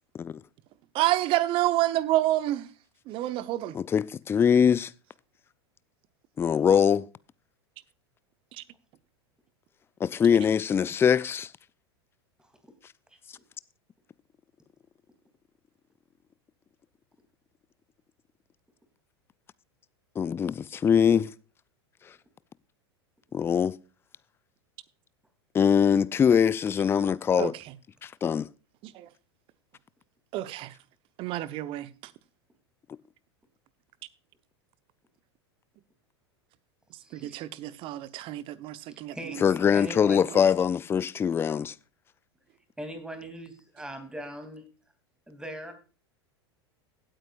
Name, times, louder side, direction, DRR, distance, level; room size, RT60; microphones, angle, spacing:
voice 1, 0.9-2.7 3.1-3.8 8.6-8.7 27.4-27.6 28.8-29.1 30.3-30.7 31.2-32.1 37.1-39.4 40.3-40.4, right 15 dB, 40° right, 0.9 m, -29 dB
voice 2, 3.7-4.9 6.4-7.1 10.0-11.5 20.2-21.3 23.3-23.8 25.5-27.5 28.0-28.5 39.4-41.7, left 7 dB, 15° left, 0.4 m, -23 dB
voice 3, 37.0-37.4 38.9-39.4 39.7-40.3 42.8-44.6 45.3-45.7, right 1 dB, 5° right, 2.9 m, -40 dB
17.0 x 8.9 x 2.5 m
figure-of-eight pair, 85°, 14 cm